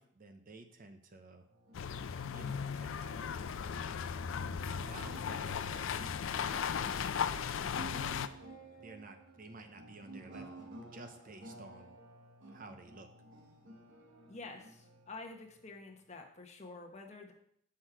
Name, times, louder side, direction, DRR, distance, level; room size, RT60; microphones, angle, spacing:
voice 1, 0.0-1.5 2.3-3.3 4.9-7.3 7.6-8.2 8.8-12.0 12.5-13.1, right 2 dB, 45° right, 7 dB, 0.7 m, -53 dB
sound 1, 1.5-16.2, right 2 dB, 70° right, 1.1 m, -54 dB
sound 2, 1.7-8.3, left 7 dB, 75° left, 0.4 m, -36 dB
Piano, 8.6-8.7, left 1 dB, 10° left, 1.3 m, -60 dB
voice 2, 14.3-17.3, left 3 dB, 35° left, 2 dB, 1.0 m, -49 dB
6.3 x 5.8 x 5.0 m, 0.69 s
head